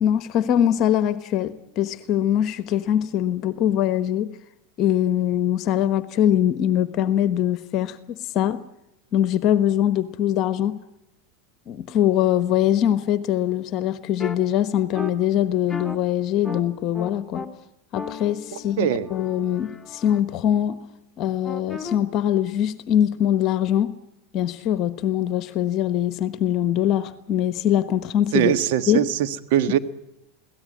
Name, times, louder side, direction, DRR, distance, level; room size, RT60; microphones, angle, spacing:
voice 1, 0.0-4.3 4.8-8.6 9.1-10.8 11.7-17.4 17.9-20.8 21.2-23.9 24.3-28.5 28.9-29.0, left 10 dB, 45° left, 1.2 m, -22 dB
sound 1, 14.2-14.4 14.9-15.1 15.7-16.0 16.4-16.6 16.9-17.5 17.9-20.2 21.4-22.0, left 4 dB, 10° left, 2.6 m, -35 dB
voice 2, 18.8-19.1 28.3-29.8, right 10 dB, 65° right, 1.5 m, -21 dB
22.5 x 17.5 x 9.7 m
hypercardioid pair, 90°, 0 cm